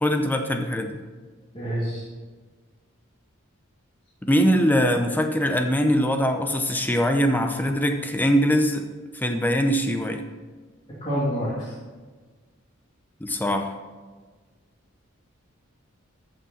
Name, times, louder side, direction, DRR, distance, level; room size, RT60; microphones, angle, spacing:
voice 1, 0.0-1.0 4.2-8.9 9.1-10.2 13.2-13.7, equal, 10° left, 5 dB, 0.6 m, -22 dB
voice 2, 1.5-2.0 11.0-11.7, equal, 25° left, -9 dB, 2.5 m, -27 dB
14.5 x 6.2 x 4.2 m, 1.4 s
head